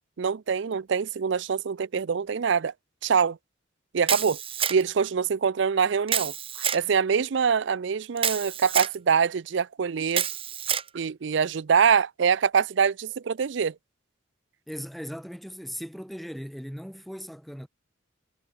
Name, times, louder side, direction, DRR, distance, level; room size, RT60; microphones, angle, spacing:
voice 1, 0.2-2.7 3.0-3.4 3.9-4.4 4.7-10.2 10.9-13.7, right 6 dB, 60° right, 0.4 m, -24 dB
Camera, 4.1-5.0 6.1-6.8 8.2-8.9 10.1-10.9, right 8 dB, 30° right, 1.4 m, -28 dB
voice 2, 14.7-17.7, equal, ahead, 6.0 m, -38 dB
head